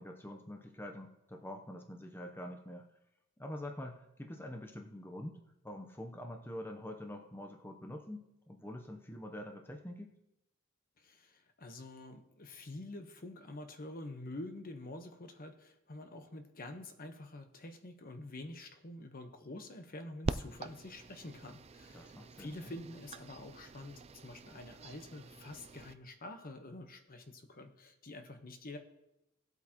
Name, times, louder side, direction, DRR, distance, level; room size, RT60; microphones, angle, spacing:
voice 1, 0.0-2.9 3.4-5.4 5.6-10.1 21.9-22.8, left 1 dB, 10° left, 3 dB, 0.7 m, -45 dB
voice 2, 11.0-22.1 22.4-28.8, left 2 dB, 45° left, 6 dB, 1.1 m, -47 dB
sound 1, 20.2-25.9, right 3 dB, 30° right, 0.4 m, -44 dB
17.5 x 8.1 x 3.0 m, 0.86 s
head